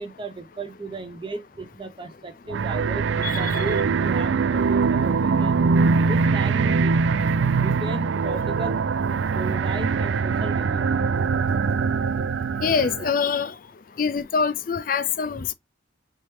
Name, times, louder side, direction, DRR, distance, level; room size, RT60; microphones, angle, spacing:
voice 1, 0.0-5.6 6.0-7.0 7.6-8.8 9.3-11.1, right 2 dB, 25° right, 0.6 m, -35 dB
sound 1, 2.5-13.1, right 5 dB, 75° right, 0.3 m, -22 dB
voice 2, 3.2-3.6 12.6-13.5 14.0-15.5, left 6 dB, 45° left, 0.4 m, -24 dB
4.2 x 3.4 x 3.1 m
head